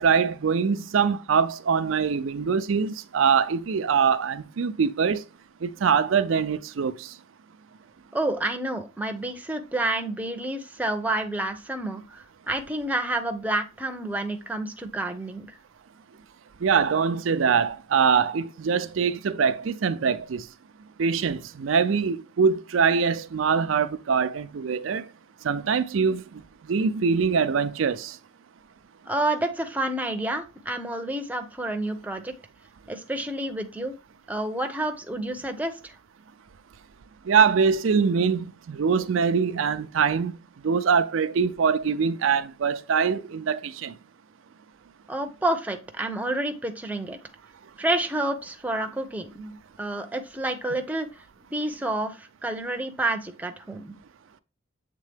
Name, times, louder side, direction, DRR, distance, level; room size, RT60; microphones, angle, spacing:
voice 1, 0.0-5.2 5.6-7.1 16.6-20.5 21.0-25.0 25.4-26.4 26.7-28.2 37.3-40.3 40.6-43.9, right 6 dB, 80° right, 0.5 m, -23 dB
voice 2, 8.1-15.6 29.1-32.3 32.9-33.9 34.3-35.9 45.1-47.2 47.8-51.1 51.5-53.9, right 1 dB, 10° right, 0.6 m, -29 dB
7.5 x 3.6 x 3.4 m
head